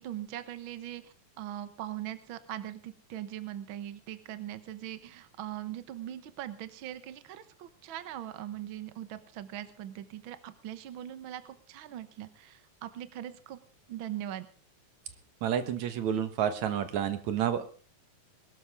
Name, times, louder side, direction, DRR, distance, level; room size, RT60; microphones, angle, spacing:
voice 1, 0.0-13.6 13.9-14.5, right 12 dB, 55° right, 12 dB, 1.5 m, -41 dB
voice 2, 15.4-17.8, right 9 dB, 75° right, 10 dB, 2.6 m, -30 dB
21.5 x 13.0 x 3.5 m, 0.39 s
omnidirectional pair, 3.4 m